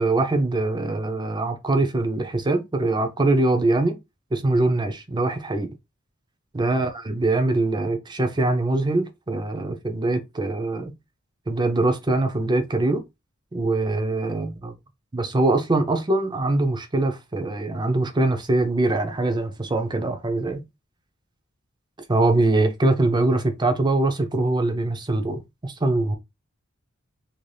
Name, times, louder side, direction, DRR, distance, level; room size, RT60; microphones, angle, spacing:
voice 1, 0.0-4.0 4.3-5.7 6.5-10.9 11.5-13.0 13.5-14.7 15.1-20.6 22.1-26.2, right 2 dB, 20° right, 0.5 m, -23 dB
2.9 x 2.7 x 3.2 m
head